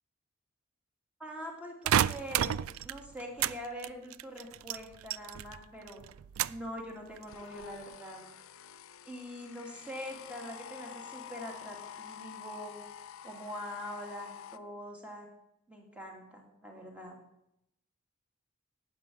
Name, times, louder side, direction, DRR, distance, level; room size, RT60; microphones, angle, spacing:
voice 1, 1.2-2.6 2.8-6.0 6.5-8.2 9.1-12.8 13.2-15.3 15.7-17.2, equal, 5° right, 0 dB, 2.5 m, -43 dB
sound 1, 1.9-3.6 3.8-5.6 5.9-6.7 7.2-7.6, right 10 dB, 80° right, 0.3 m, -31 dB
sound 2, 7.3-14.6, left 9 dB, 75° left, 0.6 m, -48 dB
11.0 x 9.1 x 6.3 m, 0.82 s
head